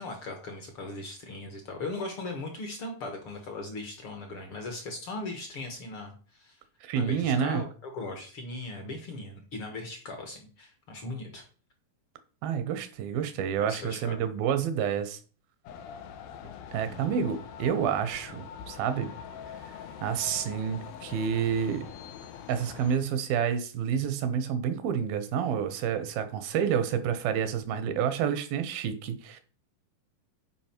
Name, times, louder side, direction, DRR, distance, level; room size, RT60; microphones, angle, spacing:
voice 1, 0.0-6.6 6.9-11.4 13.1-13.2 13.6-14.2 16.9-17.1, left 2 dB, 55° left, 1.6 m, -39 dB
voice 2, 6.8-7.6 12.4-15.2 16.7-19.1 20.0-21.9 22.5-29.4, right 8 dB, 80° right, 2.8 m, -29 dB
sound 1, 15.7-23.0, left 8 dB, 90° left, 2.8 m, -44 dB
11.0 x 5.1 x 4.5 m
omnidirectional pair, 4.2 m